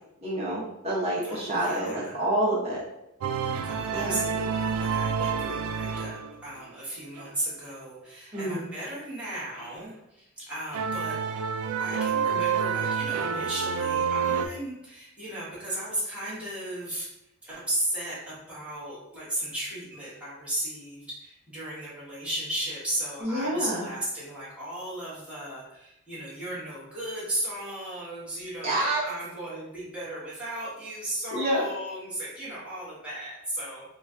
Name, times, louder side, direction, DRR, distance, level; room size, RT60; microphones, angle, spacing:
voice 1, 0.2-2.8 3.9-4.2 8.3-8.6 23.2-23.8 28.6-29.0 31.3-31.6, right 1 dB, 30° right, -5 dB, 1.1 m, -27 dB
voice 2, 1.2-2.3 3.6-11.2 11.8-17.1 17.4-33.8, right 1 dB, 5° right, -10 dB, 1.3 m, -35 dB
sound 1, 3.2-6.6 7.2-7.3 8.3-8.4 10.7-14.5, right 6 dB, 85° right, 0.3 m, -28 dB
3.0 x 2.3 x 3.7 m, 0.84 s
head